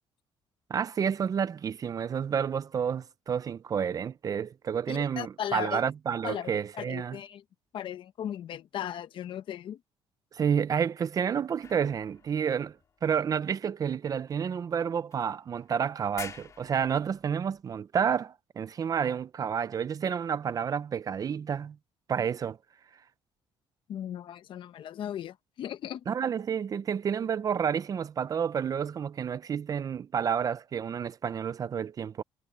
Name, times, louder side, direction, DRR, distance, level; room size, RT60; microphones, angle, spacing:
voice 1, 0.7-7.2 10.3-21.8 22.1-22.6 26.1-32.2, right 7 dB, 40° right, 0.6 m, -30 dB
voice 2, 4.9-5.8 6.2-7.4 7.7-9.8 23.9-26.0, left 10 dB, 55° left, 1.0 m, -37 dB
sound 1, 11.6-13.6 14.3-14.4 15.1-15.7 16.0-17.6, left 6 dB, 35° left, 2.1 m, -48 dB
cardioid pair, 125°, 10 cm